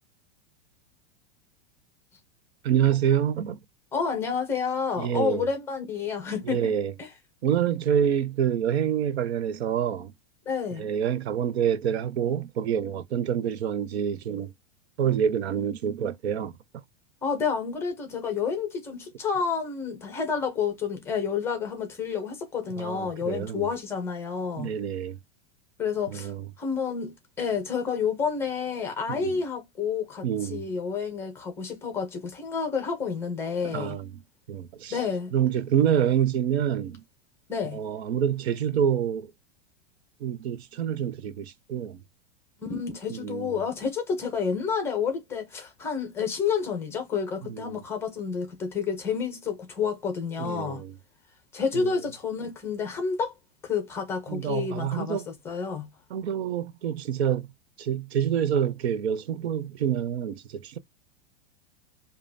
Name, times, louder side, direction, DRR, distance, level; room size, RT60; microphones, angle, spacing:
voice 1, 2.6-3.6 5.0-5.4 6.5-6.9 7.4-10.1 10.8-14.5 15.0-16.5 22.8-23.6 24.6-25.2 26.1-26.5 29.1-29.3 30.2-30.6 33.6-34.1 34.5-35.0 35.3-37.0 37.7-39.3 40.2-42.0 43.1-43.6 47.5-47.8 50.4-50.9 51.7-51.9 54.3-55.2 56.1-57.5 57.8-60.8, right 9 dB, 85° right, 0.8 m, -27 dB
voice 2, 3.9-7.1 10.5-10.9 17.2-24.7 25.8-34.0 34.9-35.3 37.5-37.8 42.6-50.8 51.5-53.3 53.6-55.9, left 6 dB, 10° left, 0.6 m, -30 dB
5.1 x 2.3 x 2.6 m
supercardioid pair, 180°, 31 cm